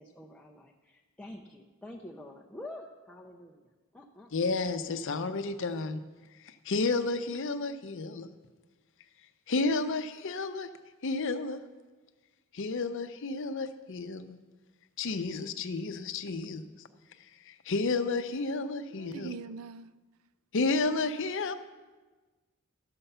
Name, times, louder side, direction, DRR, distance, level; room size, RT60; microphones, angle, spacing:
voice 1, 0.0-4.5, left 1 dB, 5° left, -1 dB, 0.5 m, -47 dB
voice 2, 4.3-6.0 6.4-8.3 9.5-10.7 11.0-11.6 12.5-14.4 15.0-16.7 17.5-19.3 20.5-21.5, left 3 dB, 60° left, 9 dB, 0.6 m, -31 dB
voice 3, 18.9-19.9, right 5 dB, 75° right, 15 dB, 0.4 m, -44 dB
12.5 x 6.9 x 5.5 m, 1.3 s
head